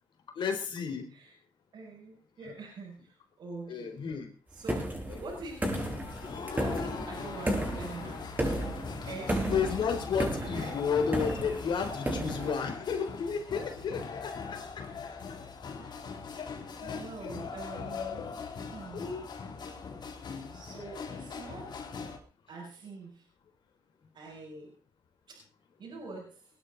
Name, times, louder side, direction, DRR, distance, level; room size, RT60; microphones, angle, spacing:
voice 1, 0.4-1.1 3.7-4.3 6.9-7.0 9.5-14.9 16.0-16.1 16.4-16.5 16.8-17.3 17.7-18.4 18.9-19.3 20.2-20.6, left 6 dB, 75° left, 5 dB, 4.1 m, -33 dB
voice 2, 1.7-4.2 4.5-4.8 5.2-5.7 6.6-8.4 9.0-9.4 10.4-10.9 12.4-12.5 14.8-15.0 15.8-16.0 16.8-18.3 18.7-19.1 20.5-21.7 22.5-23.3 24.1-24.7 25.3-25.4 25.8-26.3, right 3 dB, 70° right, -4 dB, 6.9 m, -44 dB
sound 1, 4.7-12.5, right 1 dB, 20° right, 7.5 m, -34 dB
sound 2, 5.6-22.2, left 5 dB, 60° left, 3.5 m, -41 dB
21.0 x 12.0 x 4.1 m, 0.38 s
cardioid pair, 75°, 8 cm